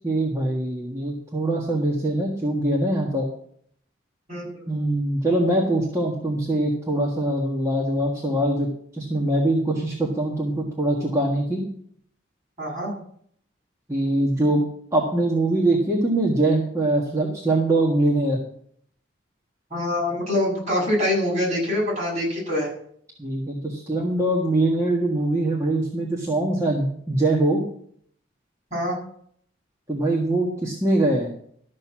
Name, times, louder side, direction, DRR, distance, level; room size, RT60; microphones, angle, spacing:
voice 1, 0.0-3.2 4.7-11.6 13.9-14.6 14.9-18.4 23.2-27.6 29.9-31.3, right 1 dB, 15° right, -2 dB, 1.6 m, -23 dB
voice 2, 4.3-4.8 12.6-12.9 19.7-22.7 28.7-29.0, left 1 dB, 35° right, -4 dB, 6.9 m, -25 dB
13.0 x 6.6 x 7.4 m, 0.65 s
head